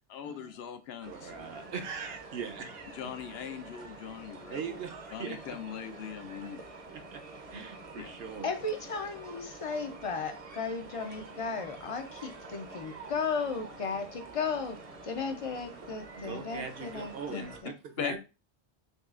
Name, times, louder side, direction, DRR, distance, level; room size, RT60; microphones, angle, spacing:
voice 1, 0.1-1.3 2.9-4.8 5.1-6.6 8.0-8.1 17.3-17.4 18.0-18.2, left 8 dB, 70° left, 0.8 m, -40 dB
sound 1, 1.0-17.6, right 3 dB, 40° right, 0.6 m, -47 dB
voice 2, 1.0-3.1 4.5-5.6 6.9-7.2 7.5-8.5 16.1-18.2, right 6 dB, 65° right, 0.9 m, -41 dB
voice 3, 8.4-14.8 15.0-17.7, left 4 dB, 45° left, 0.5 m, -35 dB
6.5 x 2.3 x 2.4 m
omnidirectional pair, 1.1 m